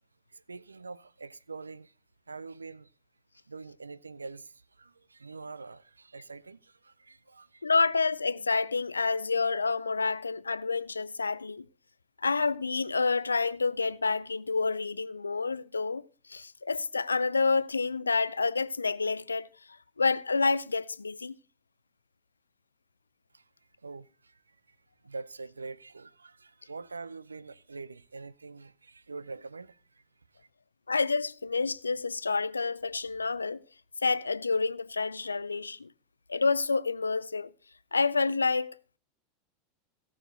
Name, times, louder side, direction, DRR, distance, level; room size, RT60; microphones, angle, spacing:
voice 1, 0.3-1.9 2.3-2.9 3.5-7.6 23.3-23.4 23.8-24.8 25.0-30.0 30.4-30.5, right 4 dB, 90° right, 0.4 m, -45 dB
voice 2, 7.6-11.6 12.2-16.0 16.3-19.5 20.0-21.3 30.9-33.6 34.0-35.9 36.3-37.5 37.9-39.0, left 4 dB, 90° left, 0.4 m, -28 dB
17.5 x 6.3 x 3.9 m
figure-of-eight pair, 85°, 0 cm